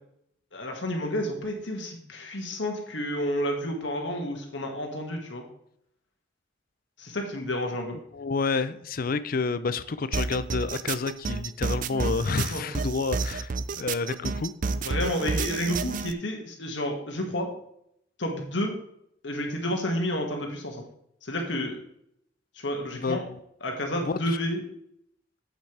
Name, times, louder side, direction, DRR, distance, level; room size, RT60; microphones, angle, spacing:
voice 1, 0.5-5.4 7.0-8.0 12.5-12.6 14.8-17.5 18.2-18.7 19.2-20.8 21.2-21.8 22.6-23.2 23.6-24.6, equal, 70° left, 2 dB, 2.0 m, -30 dB
voice 2, 8.1-14.5 22.9-23.2 24.1-24.4, left 4 dB, 50° left, 14 dB, 0.5 m, -29 dB
sound 1, 10.1-16.1, right 4 dB, 45° right, 0.4 m, -30 dB
8.3 x 8.1 x 3.4 m, 0.74 s
head